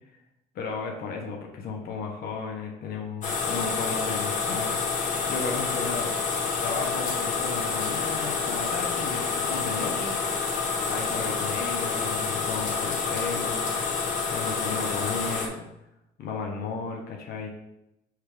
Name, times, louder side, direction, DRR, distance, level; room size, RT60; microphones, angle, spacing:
voice 1, 0.5-4.8 5.3-6.1 6.6-10.2 10.8-15.7 16.2-17.5, left 4 dB, 65° left, 1 dB, 1.3 m, -34 dB
sound 1, 3.2-15.5, left 5 dB, 50° left, 1.5 m, -28 dB
6.4 x 3.5 x 5.0 m, 0.87 s
cardioid pair, 110°, 17 cm